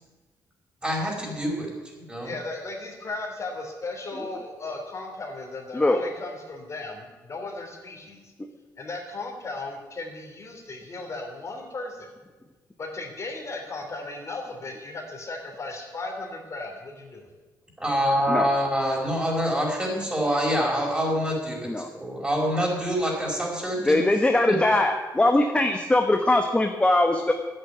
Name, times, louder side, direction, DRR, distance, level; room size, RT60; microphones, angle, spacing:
voice 1, 0.8-1.7 2.1-2.3 17.8-21.7 22.0-24.0 24.5-24.6, equal, 15° right, -2 dB, 5.2 m, -25 dB
voice 2, 2.2-8.3 8.8-12.1 12.8-17.3, left 2 dB, 40° left, 2 dB, 2.9 m, -36 dB
voice 3, 23.8-27.3, left 2 dB, 15° left, 4 dB, 1.1 m, -21 dB
10.0 x 8.9 x 9.3 m, 1.3 s
cardioid pair, 90°, 7 cm